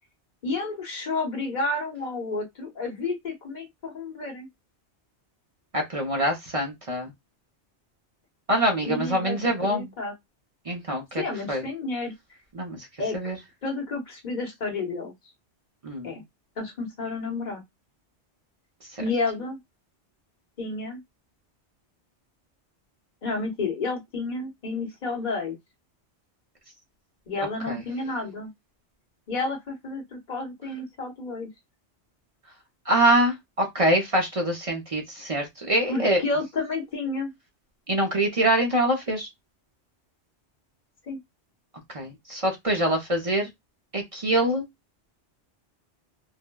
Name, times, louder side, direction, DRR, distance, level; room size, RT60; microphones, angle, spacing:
voice 1, 0.4-4.5 8.8-10.1 11.2-12.2 13.0-13.3 13.6-15.1 16.0-16.2 16.6-17.6 19.0-19.6 20.6-21.0 23.2-25.6 27.3-28.5 29.3-31.5 35.9-37.3 41.1-41.2, left 3 dB, 45° left, 1.1 m, -31 dB
voice 2, 5.7-7.1 8.5-9.9 10.7-11.2 11.5-11.6 12.5-12.9 13.1-13.4 15.8-16.1 18.9-19.0 27.4-27.8 32.9-36.2 37.9-39.3 41.9-43.5 43.9-44.7, right 1 dB, 40° right, 0.6 m, -24 dB
3.2 x 2.1 x 2.2 m
omnidirectional pair, 1.2 m